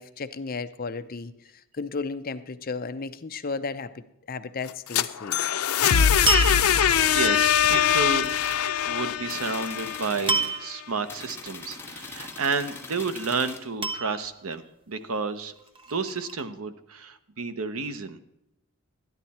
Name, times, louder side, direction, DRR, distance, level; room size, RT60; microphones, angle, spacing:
voice 1, 0.0-5.4, left 4 dB, 40° left, 0.6 m, -34 dB
sound 1, 4.7-10.6, left 8 dB, 85° left, 0.5 m, -22 dB
sound 2, 6.3-7.2 10.3-10.9 12.2-12.8 13.8-14.6 15.6-16.4, right 3 dB, 25° right, 0.7 m, -28 dB
voice 2, 6.6-8.3 8.8-15.5 15.9-18.2, right 4 dB, 80° right, 0.9 m, -31 dB
sound 3, 7.6-7.8 8.2-8.6 9.3-10.6 11.0-13.7, left 3 dB, 10° left, 1.4 m, -41 dB
13.0 x 10.5 x 4.2 m
head